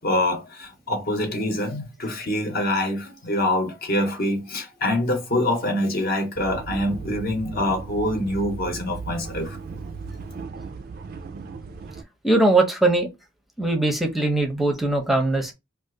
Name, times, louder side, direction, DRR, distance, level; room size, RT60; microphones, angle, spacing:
voice 1, 0.0-9.6, left 1 dB, 50° left, 0.8 m, -25 dB
sound 1, 6.4-12.0, right 4 dB, 50° right, 0.3 m, -36 dB
voice 2, 12.2-13.1 13.6-15.5, right 2 dB, ahead, 0.6 m, -20 dB
2.5 x 2.4 x 3.7 m
head